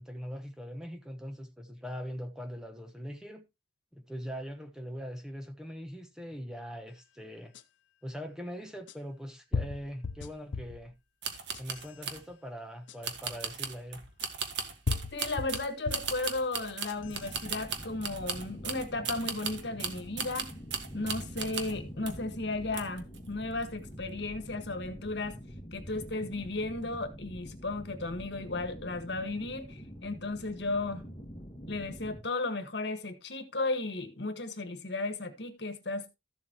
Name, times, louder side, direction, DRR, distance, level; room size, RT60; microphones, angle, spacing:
voice 1, 0.0-3.4 3.9-7.5 8.0-10.9 11.6-14.0, equal, 5° right, 1.1 m, -41 dB
sound 1, 7.5-7.6 8.9-9.0 9.5-10.8 11.4-11.9 12.9-13.0 14.2-14.3 14.9-16.2 16.7-17.2, left 4 dB, 90° left, 0.7 m, -35 dB
sound 2, 11.2-12.2 13.0-21.8 22.1-22.3 22.7-23.2 23.5-23.7, right 6 dB, 70° right, 1.5 m, -37 dB
voice 2, 15.1-20.5 20.9-25.4 25.7-31.0 31.7-36.1, left 2 dB, 65° left, 1.6 m, -35 dB
sound 3, 17.0-32.2, equal, 30° left, 1.8 m, -46 dB
14.0 x 7.3 x 2.9 m
head